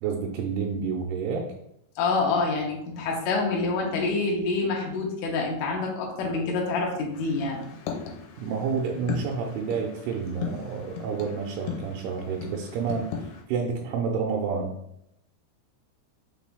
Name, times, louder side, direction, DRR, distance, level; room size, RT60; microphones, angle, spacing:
voice 1, 0.0-1.4 8.4-13.1 13.5-14.7, right 5 dB, 85° right, 0 dB, 2.6 m, -29 dB
voice 2, 2.0-7.6, left 3 dB, 75° left, -1 dB, 2.1 m, -27 dB
sound 1, 7.1-13.4, left 7 dB, 90° left, 2.7 m, -38 dB
5.9 x 2.6 x 3.4 m, 0.79 s
omnidirectional pair, 4.5 m